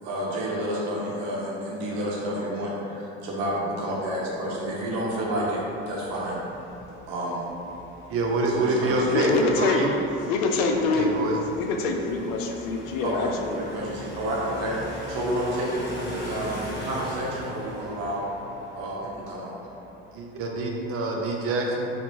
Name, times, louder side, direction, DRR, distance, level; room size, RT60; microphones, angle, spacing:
voice 1, 0.0-6.4 7.1-7.4 8.5-9.2 13.0-13.3 13.6-18.2 18.8-19.5, right 1 dB, 70° right, -4 dB, 1.1 m, -30 dB
sound 1, 4.0-20.2, left 1 dB, 35° left, 1.2 m, -41 dB
voice 2, 8.1-9.9 10.9-11.4 20.1-21.9, right 2 dB, 45° right, 0 dB, 0.7 m, -25 dB
voice 3, 9.1-9.8 10.3-11.1 11.6-13.7, left 3 dB, 80° left, 2 dB, 0.6 m, -25 dB
4.1 x 3.3 x 3.0 m, 2.9 s
supercardioid pair, 90°, 30 cm